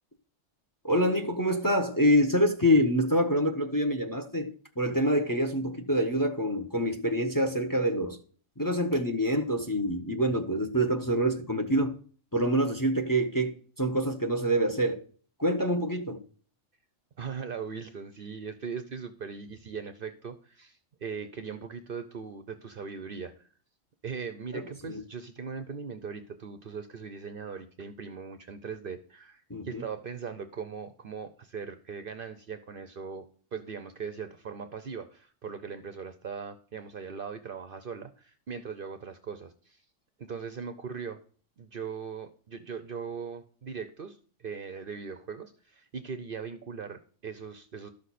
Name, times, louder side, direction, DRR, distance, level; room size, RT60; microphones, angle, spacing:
voice 1, 0.8-8.2 8.6-12.0 12.3-15.0 15.4-16.2 24.5-25.0 29.5-29.8, equal, 20° left, 0.8 m, -26 dB
voice 2, 17.2-23.5 24.0-33.3 33.5-39.8 40.2-41.2 41.6-47.9, right 6 dB, 55° right, 0.7 m, -39 dB
12.0 x 6.4 x 4.2 m
omnidirectional pair, 1.3 m